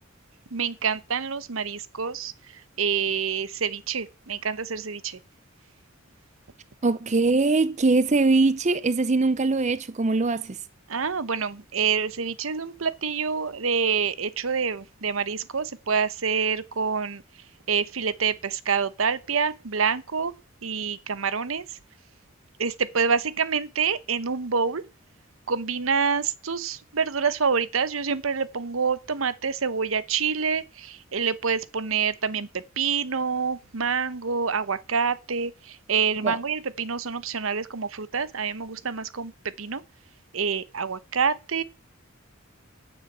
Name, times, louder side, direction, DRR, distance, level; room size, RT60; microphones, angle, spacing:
voice 1, 0.5-5.2 10.9-17.2 17.7-20.3 20.6-21.8 22.6-24.8 25.5-39.8 40.3-41.6, right 6 dB, 85° right, 1.0 m, -27 dB
voice 2, 6.8-10.6 36.2-36.4, right 3 dB, 35° right, 0.6 m, -22 dB
9.5 x 7.3 x 8.4 m
head